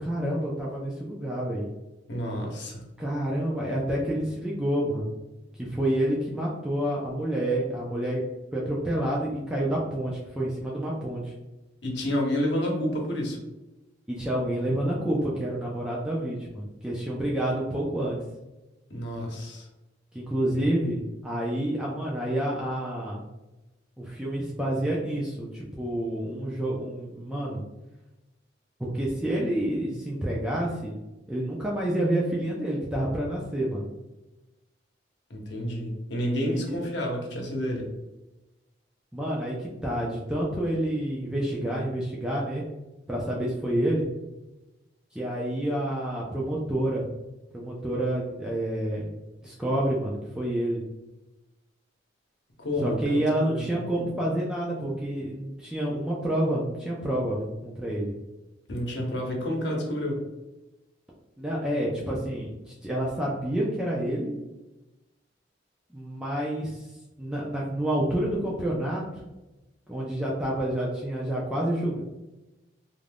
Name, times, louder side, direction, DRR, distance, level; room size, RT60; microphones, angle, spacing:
voice 1, 0.0-1.7 3.0-5.1 5.6-8.2 8.5-11.3 14.1-18.2 20.1-23.2 24.0-27.6 28.8-31.0 31.3-33.9 36.4-36.8 39.1-42.7 43.1-44.0 45.1-47.1 47.5-49.1 49.4-50.8 52.8-58.1 61.4-64.3 65.9-66.9 67.2-69.2 69.9-72.0, right 1 dB, 5° right, -5 dB, 0.4 m, -28 dB
voice 2, 2.1-2.8 11.8-13.4 18.9-19.7 35.3-37.9 52.6-53.7 54.0-54.1 58.7-60.2, equal, 75° left, 0 dB, 0.8 m, -29 dB
2.5 x 2.2 x 3.3 m, 1.0 s
head